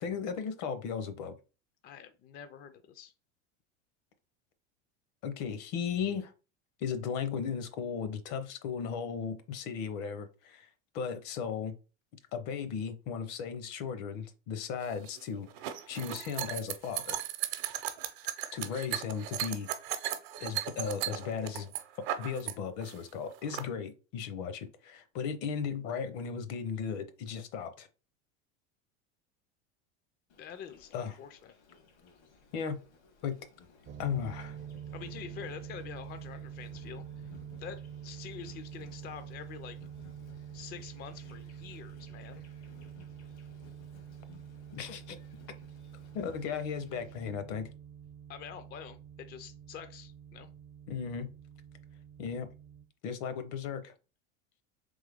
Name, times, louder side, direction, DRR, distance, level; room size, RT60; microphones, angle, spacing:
voice 1, 0.0-1.4 5.2-6.3 6.8-10.7 10.9-11.7 12.3-15.5 15.9-17.2 18.5-19.7 20.4-21.7 22.2-27.9 30.9-31.2 32.5-32.8 33.2-33.4 34.0-34.6 44.7-45.2 46.1-47.7 50.9-51.3 52.2-52.5 53.0-53.9, left 6 dB, 60° left, 0.8 m, -36 dB
voice 2, 1.8-3.1 30.4-31.5 34.9-37.0 37.6-39.8 40.5-42.5 48.3-50.5, left 8 dB, 30° left, 0.4 m, -46 dB
sound 1, 14.8-22.5 22.8-23.6, right 12 dB, 65° right, 0.7 m, -36 dB
Insect, 30.3-47.3, left 4 dB, 80° left, 1.7 m, -58 dB
sound 2, 33.9-52.8, right 8 dB, 35° right, 0.5 m, -47 dB
3.6 x 3.3 x 3.5 m
supercardioid pair, 115°, 34 cm